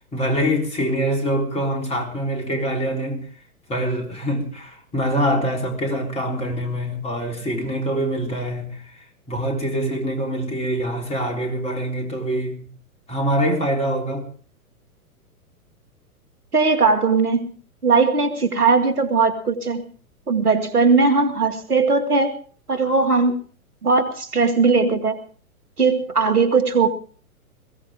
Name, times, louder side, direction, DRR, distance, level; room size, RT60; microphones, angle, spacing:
voice 1, 0.1-3.3 3.7-12.7 13.1-14.3, equal, 15° left, 3.7 m, -24 dB
voice 2, 16.5-17.5 17.8-19.8 20.3-22.3 22.7-23.4 23.8-25.2 25.8-26.9, right 4 dB, 80° right, 2.5 m, -19 dB
22.0 x 16.5 x 3.6 m
figure-of-eight pair, 110°, 44 cm